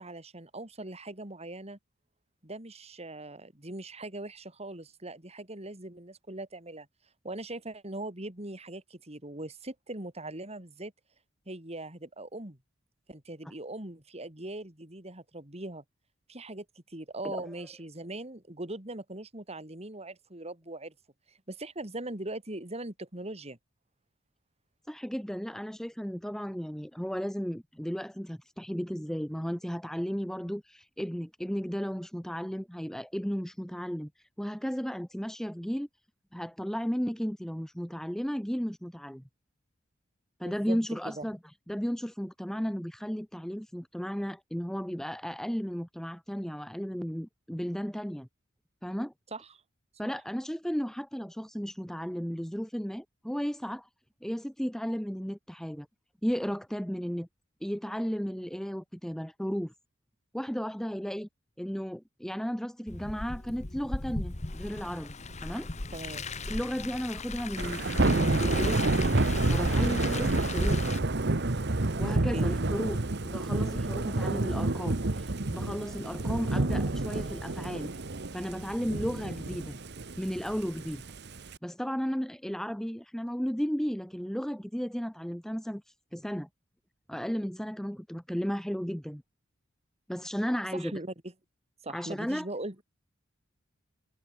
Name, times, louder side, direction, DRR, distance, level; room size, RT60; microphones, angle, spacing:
voice 1, 0.0-1.8 2.4-6.9 7.2-10.9 11.5-12.6 13.1-15.8 16.3-20.9 21.3-23.6 40.4-40.8 41.0-41.2 49.3-49.6 50.0-50.1 65.9-66.3 72.1-72.5 90.7-91.1 91.8-92.8, right 2 dB, 30° right, 3.4 m, -40 dB
voice 2, 24.9-34.1 34.4-35.9 36.3-39.2 40.4-41.4 41.7-48.3 48.8-49.1 50.0-53.9 54.2-55.9 56.2-57.3 57.6-59.7 60.3-61.3 61.6-65.2 65.4-65.7 66.5-70.8 72.0-77.9 78.3-79.7 80.2-81.0 81.6-85.8 86.1-86.5 87.1-89.2 90.1-90.9 91.9-92.5, equal, ahead, 0.9 m, -34 dB
Car, 62.9-71.0, left 3 dB, 35° left, 1.4 m, -37 dB
Thunder / Rain, 67.6-81.6, right 2 dB, 55° right, 1.3 m, -29 dB
head